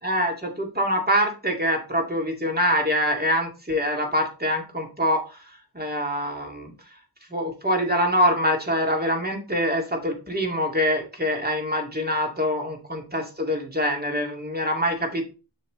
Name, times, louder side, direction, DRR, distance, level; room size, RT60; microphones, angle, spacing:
voice 1, 0.0-5.4 5.7-6.7 7.3-15.2, equal, 20° right, 2 dB, 2.3 m, -24 dB
7.3 x 6.0 x 3.2 m, 0.32 s
wide cardioid pair, 75°, 43 cm